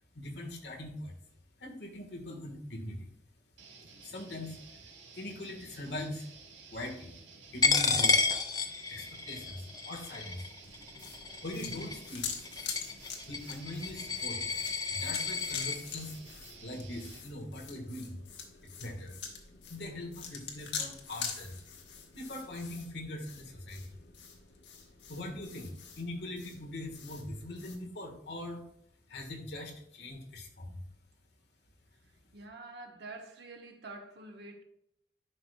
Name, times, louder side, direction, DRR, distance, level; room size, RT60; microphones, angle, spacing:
voice 1, 0.1-1.1 1.6-3.1 4.0-4.6 5.1-6.3 6.7-7.1 7.5-8.3 8.9-10.4 11.4-12.3 13.3-14.5 14.9-16.2 16.6-18.2 18.8-19.2 19.7-21.6 22.1-24.0 25.1-28.6 29.1-30.8, left 1 dB, 65° left, 1.6 m, -41 dB
sound 1, 3.6-17.3, right 4 dB, 85° right, 1.6 m, -53 dB
Coin (dropping), 7.6-15.8, left 4 dB, 20° left, 0.6 m, -31 dB
sound 2, 10.6-27.8, left 6 dB, 80° left, 1.2 m, -45 dB
voice 2, 32.3-34.6, right 2 dB, 65° right, 1.1 m, -47 dB
11.0 x 5.0 x 2.3 m
head